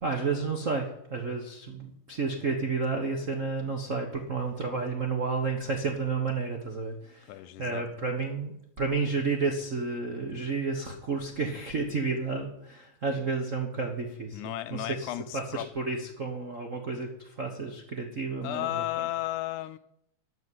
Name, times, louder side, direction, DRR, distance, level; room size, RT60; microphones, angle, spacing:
voice 1, 0.0-18.8, right 4 dB, 60° right, 0.8 m, -31 dB
voice 2, 7.3-7.9 14.3-15.7 18.4-19.8, left 15 dB, 80° left, 1.9 m, -34 dB
14.0 x 5.8 x 9.3 m
omnidirectional pair, 3.6 m